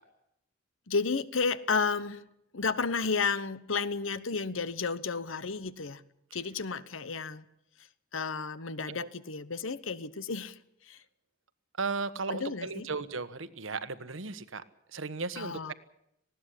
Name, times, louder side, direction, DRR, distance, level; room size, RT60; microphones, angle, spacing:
voice 1, 0.9-2.2 2.5-6.0 6.3-7.4 8.1-10.6 10.8-11.0 12.3-12.9 15.4-15.7, left 5 dB, 90° left, 16 dB, 1.1 m, -32 dB
voice 2, 11.8-14.6 14.9-15.7, right 4 dB, 85° right, 13 dB, 1.4 m, -35 dB
19.5 x 16.5 x 10.0 m, 0.79 s
head